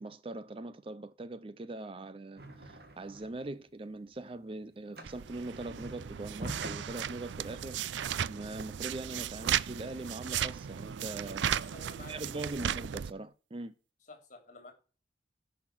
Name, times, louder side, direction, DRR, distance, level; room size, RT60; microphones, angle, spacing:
voice 1, 0.0-7.8 8.3-11.5 12.1-13.7, right 2 dB, 30° right, 0.5 m, -41 dB
sound 1, 2.4-3.5 3.9-8.4, right 1 dB, 60° right, 1.7 m, -46 dB
sound 2, 5.0-13.1, right 9 dB, 90° right, 0.4 m, -36 dB
voice 2, 11.4-12.1 12.5-12.7 14.1-14.7, left 3 dB, 45° left, 3.0 m, -51 dB
10.5 x 5.8 x 6.0 m
head